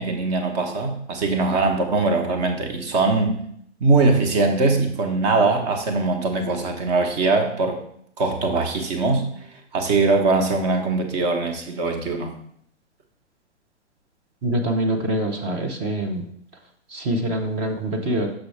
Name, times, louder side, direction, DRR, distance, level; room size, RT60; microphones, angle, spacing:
voice 1, 0.0-3.4 3.8-7.8 8.2-9.2 9.7-12.3, right 3 dB, 35° right, 4 dB, 1.1 m, -21 dB
voice 2, 14.4-16.3 16.9-18.3, right 1 dB, 15° right, 4 dB, 0.5 m, -24 dB
6.3 x 5.9 x 3.3 m, 0.68 s
figure-of-eight pair, 125°, 35 cm